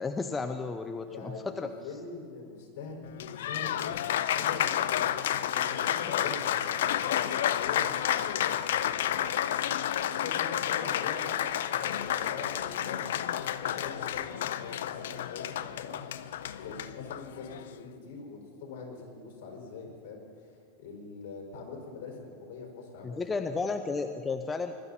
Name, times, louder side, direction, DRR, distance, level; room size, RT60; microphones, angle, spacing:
voice 1, 0.0-1.7 23.0-24.7, left 4 dB, 15° left, 7 dB, 0.5 m, -33 dB
voice 2, 1.0-9.5 9.9-16.0 16.6-23.4, left 4 dB, 65° left, -1 dB, 4.9 m, -43 dB
Applause, 3.0-17.8, left 11 dB, 80° left, 0.5 m, -30 dB
21.0 x 12.5 x 4.2 m, 2.2 s
supercardioid pair, 135°, 0 cm